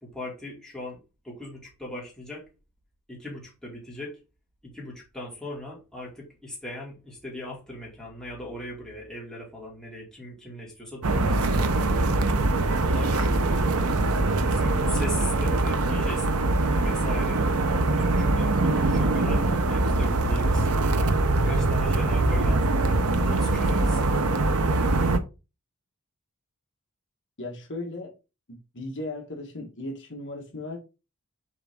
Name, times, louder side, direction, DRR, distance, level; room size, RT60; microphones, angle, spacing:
voice 1, 0.0-1.0 1.2-2.4 3.1-4.2 4.6-11.9 12.8-13.4 14.4-17.5 17.8-20.7 21.3-24.0, left 1 dB, 5° left, 2.4 m, -39 dB
sound 1, 11.0-25.2, right 2 dB, 85° right, 0.8 m, -23 dB
voice 2, 27.4-28.1 28.5-30.8, left 2 dB, 55° left, 1.5 m, -36 dB
7.3 x 3.6 x 3.6 m
head